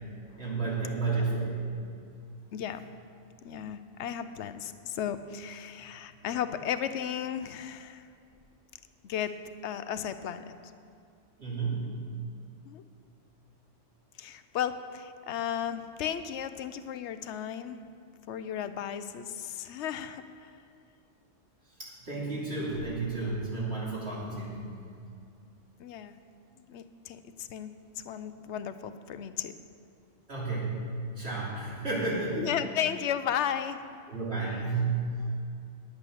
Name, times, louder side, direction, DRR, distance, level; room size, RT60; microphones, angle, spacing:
voice 1, 0.4-2.0 11.4-11.9 21.8-24.7 30.3-30.9 31.1-32.5 34.1-35.3, right 3 dB, 60° right, -7 dB, 3.2 m, -32 dB
voice 2, 2.5-2.9 3.4-8.0 9.0-9.3 9.6-10.5 12.7-12.8 14.2-17.8 18.3-20.5 25.8-26.2 26.7-29.5 32.4-33.8 34.5-34.6 35.2-35.3, left 9 dB, 75° left, 11 dB, 0.9 m, -35 dB
10.5 x 8.4 x 6.4 m, 2.4 s
omnidirectional pair, 1.2 m